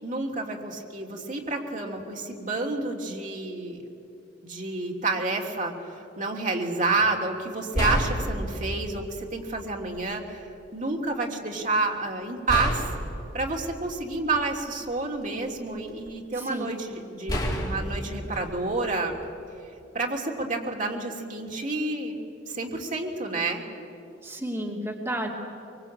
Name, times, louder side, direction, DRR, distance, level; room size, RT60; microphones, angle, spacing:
voice 1, 0.0-3.8 4.4-10.4 10.7-12.8 13.3-19.1 19.9-22.2 22.5-23.6, right 3 dB, 45° right, 1 dB, 3.1 m, -29 dB
sound 1, 7.0-7.1 7.7-9.0 9.9-10.1 12.5-14.7 15.2-16.1 17.3-19.4, equal, 20° left, 4.2 m, -30 dB
voice 2, 16.3-16.7 24.2-25.3, right 1 dB, 15° right, -1 dB, 2.8 m, -32 dB
24.0 x 23.5 x 8.8 m, 2.8 s
head